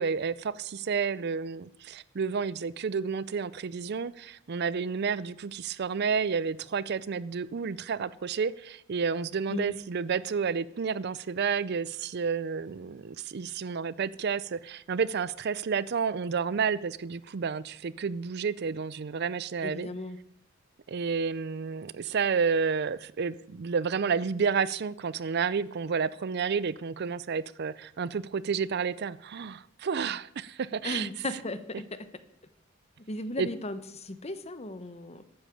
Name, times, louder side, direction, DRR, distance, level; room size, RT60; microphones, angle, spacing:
voice 1, 0.0-19.9 20.9-31.1 33.4-33.5, right 5 dB, 55° right, 0.4 m, -30 dB
voice 2, 19.6-20.2 30.8-32.0 33.1-35.2, left 1 dB, 30° left, 0.9 m, -36 dB
12.5 x 8.9 x 7.0 m
head